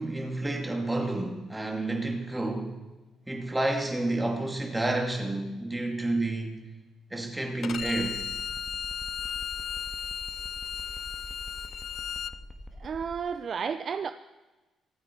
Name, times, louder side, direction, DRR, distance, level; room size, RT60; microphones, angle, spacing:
voice 1, 0.0-2.8 3.3-6.7 7.1-8.2, right 2 dB, 10° right, 2 dB, 2.3 m, -30 dB
Bowed string instrument, 7.6-12.3, left 8 dB, 50° left, 0.4 m, -35 dB
sound 1, 7.8-13.2, left 1 dB, 10° left, 1.6 m, -44 dB
voice 2, 12.8-14.1, right 6 dB, 45° right, 10 dB, 0.5 m, -32 dB
24.0 x 9.2 x 4.5 m, 1.2 s
cardioid pair, 135°, 0 cm